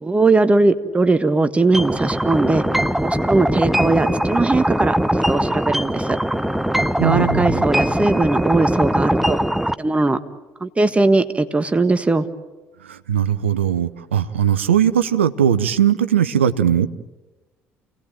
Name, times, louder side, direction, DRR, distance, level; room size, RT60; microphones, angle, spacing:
voice 1, 0.0-2.6 3.0-5.0 5.3-6.2 7.0-9.4 9.8-10.2 10.6-12.3, right 3 dB, 20° right, 9 dB, 1.5 m, -19 dB
sound 1, 1.7-9.7, equal, 5° right, 0.9 m, -21 dB
voice 2, 7.0-7.6 12.9-16.9, right 9 dB, 85° right, 12 dB, 0.8 m, -19 dB
29.0 x 18.5 x 9.1 m, 1.2 s
hypercardioid pair, 55°, 6 cm